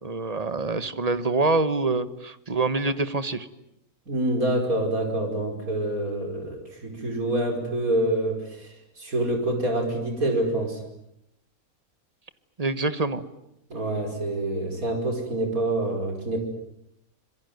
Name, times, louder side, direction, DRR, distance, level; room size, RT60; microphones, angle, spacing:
voice 1, 0.0-3.5 12.6-13.2, right 3 dB, 30° right, 13 dB, 1.2 m, -25 dB
voice 2, 4.1-10.8 13.7-16.4, right 1 dB, 70° right, 4 dB, 5.6 m, -26 dB
26.5 x 22.5 x 9.3 m, 0.82 s
omnidirectional pair, 1.5 m